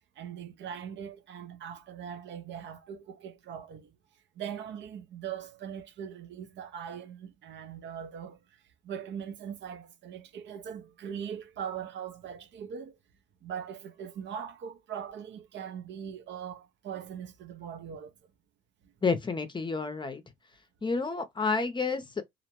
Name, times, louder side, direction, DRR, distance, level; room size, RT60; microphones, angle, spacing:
voice 1, 0.2-3.9 4.4-8.4 8.8-13.0 13.4-18.1, right 8 dB, 65° right, 0.6 m, -41 dB
voice 2, 19.0-20.2 20.8-22.2, left 4 dB, 25° left, 0.6 m, -30 dB
2.5 x 2.1 x 2.8 m
cardioid pair, 90°, 20 cm